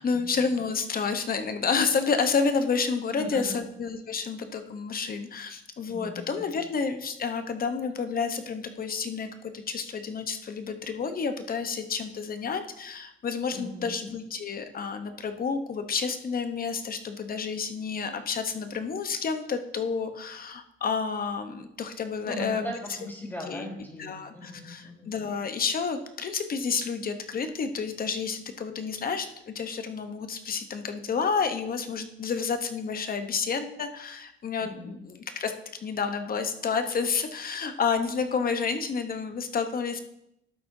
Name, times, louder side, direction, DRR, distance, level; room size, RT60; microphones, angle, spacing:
voice 1, 0.0-22.7 23.0-23.1 23.5-23.7 24.0-35.5 35.8-40.0, left 5 dB, 45° left, 8 dB, 0.9 m, -30 dB
voice 2, 3.2-3.6 5.9-6.5 13.5-13.9 22.2-25.1 34.6-34.9, equal, 10° left, -2 dB, 3.6 m, -39 dB
12.0 x 8.3 x 2.7 m, 0.79 s
cardioid pair, 90°, 20 cm